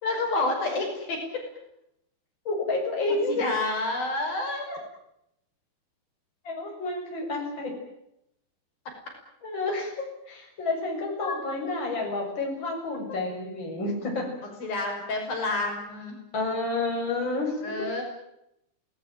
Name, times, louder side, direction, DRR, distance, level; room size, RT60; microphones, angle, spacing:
voice 1, 0.0-1.2 3.4-4.8 11.2-11.4 14.6-16.2 17.6-18.0, left 2 dB, 65° left, 2 dB, 7.6 m, -29 dB
voice 2, 2.5-3.5 6.4-7.7 9.4-14.3 16.3-17.9, left 2 dB, 30° left, 1 dB, 7.7 m, -30 dB
27.5 x 19.5 x 9.1 m, 0.80 s
omnidirectional pair, 4.5 m